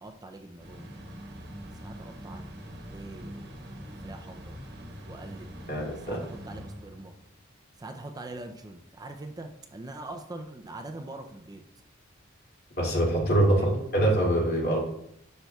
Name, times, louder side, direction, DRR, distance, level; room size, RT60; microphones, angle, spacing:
voice 1, 0.0-0.9 1.8-2.5 2.9-3.5 4.0-4.6 5.1-5.5 6.0-7.2 7.8-11.6 13.5-13.9, right 2 dB, 20° right, 5 dB, 0.4 m, -43 dB
sound 1, 0.6-7.3, equal, 55° right, 1.2 m, -43 dB
voice 2, 5.7-6.2 12.8-14.8, right 1 dB, 50° left, -3 dB, 2.6 m, -24 dB
10.0 x 6.6 x 2.3 m, 0.75 s
head